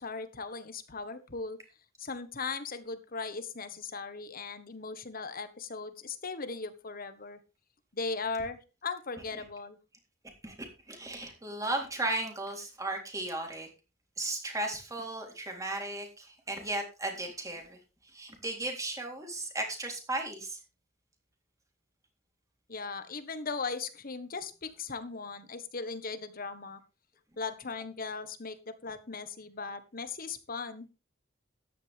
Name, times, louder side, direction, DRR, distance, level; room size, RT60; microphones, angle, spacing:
voice 1, 0.0-1.6 2.0-7.4 7.9-9.8 22.7-26.8 27.4-30.9, left 4 dB, 50° left, 11 dB, 1.4 m, -38 dB
voice 2, 10.4-13.7 14.2-20.6, right 2 dB, 15° right, 2 dB, 3.6 m, -36 dB
14.0 x 11.0 x 3.5 m, 0.30 s
head